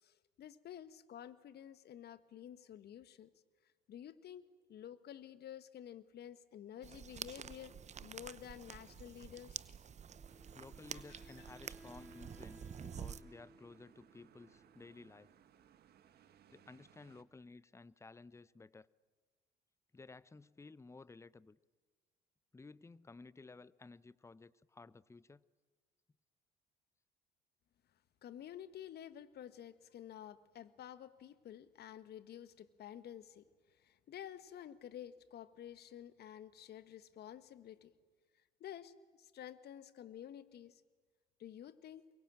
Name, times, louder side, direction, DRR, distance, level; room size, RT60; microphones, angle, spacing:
voice 1, 0.0-3.3 3.9-7.7 8.0-9.6 10.9-11.2 28.2-33.4 33.8-37.9 38.6-40.8 41.4-42.1, left 10 dB, 50° left, 14 dB, 1.5 m, -51 dB
sound 1, 6.8-13.2, right 8 dB, 35° right, 0.8 m, -49 dB
Wind instrument woodwind instrument, 10.1-15.2, equal, 5° right, 2.5 m, -61 dB
sound 2, 10.3-17.2, right 9 dB, 50° right, 1.6 m, -66 dB
voice 2, 10.5-15.3 16.5-18.9 19.9-21.6 22.5-25.4, left 3 dB, 15° left, 20 dB, 0.7 m, -55 dB
24.0 x 22.0 x 8.8 m, 1.4 s
hypercardioid pair, 60°, 21 cm